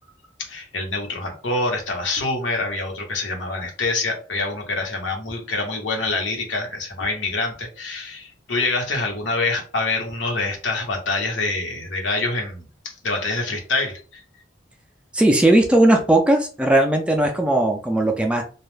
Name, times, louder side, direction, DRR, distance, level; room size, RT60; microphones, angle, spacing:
voice 1, 0.5-14.2, left 3 dB, 90° left, 1 dB, 0.9 m, -26 dB
voice 2, 15.1-18.4, right 1 dB, 5° right, 3 dB, 0.3 m, -17 dB
2.2 x 2.1 x 3.1 m, 0.37 s
head